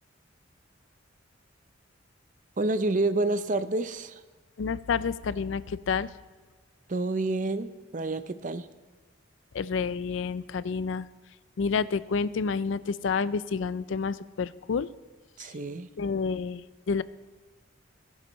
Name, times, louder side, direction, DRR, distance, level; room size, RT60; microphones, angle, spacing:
voice 1, 2.6-4.2 6.9-8.7 15.4-15.9, right 2 dB, 40° right, 12 dB, 0.6 m, -28 dB
voice 2, 4.6-6.1 9.5-11.1 11.6-14.9 15.4-15.5 16.0-17.0, left 5 dB, 70° left, 17 dB, 0.4 m, -29 dB
20.5 x 11.0 x 3.1 m, 1.4 s
head